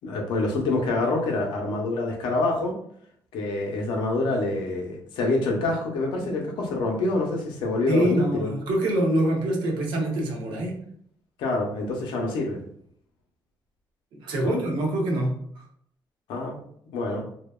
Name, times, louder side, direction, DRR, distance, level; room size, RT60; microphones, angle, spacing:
voice 1, 0.0-2.8 3.3-8.5 11.4-12.6 14.4-14.6 16.3-16.6 16.9-17.2, left 2 dB, 90° left, 0 dB, 0.6 m, -26 dB
voice 2, 7.9-10.7 14.1-15.3, right 1 dB, 85° right, 0 dB, 0.7 m, -25 dB
2.7 x 2.1 x 2.2 m, 0.65 s
cardioid pair, 75°, 8 cm